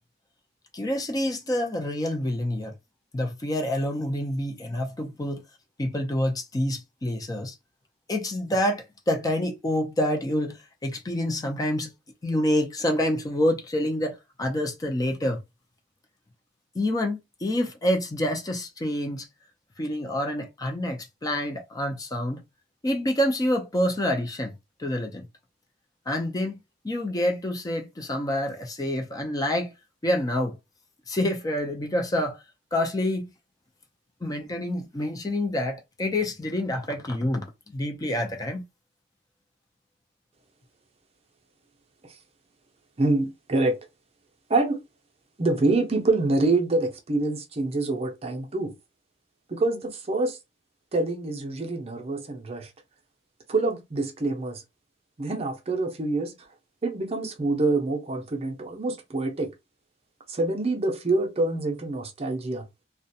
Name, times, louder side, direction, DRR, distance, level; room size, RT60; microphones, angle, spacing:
voice 1, 0.7-2.7 3.1-5.4 5.8-7.5 8.1-11.9 12.2-15.4 16.7-19.3 19.8-22.4 22.8-24.5 24.8-25.3 26.1-26.6 26.8-29.7 30.0-30.6 31.1-32.4 32.7-33.3 34.2-38.6, left 1 dB, 20° left, 0.4 m, -27 dB
voice 2, 43.0-43.8 44.5-44.8 45.4-48.7 49.5-50.4 50.9-52.7 53.5-54.6 55.2-56.3 56.8-59.5 60.3-62.6, right 2 dB, 35° right, 0.6 m, -26 dB
2.4 x 2.1 x 2.6 m
head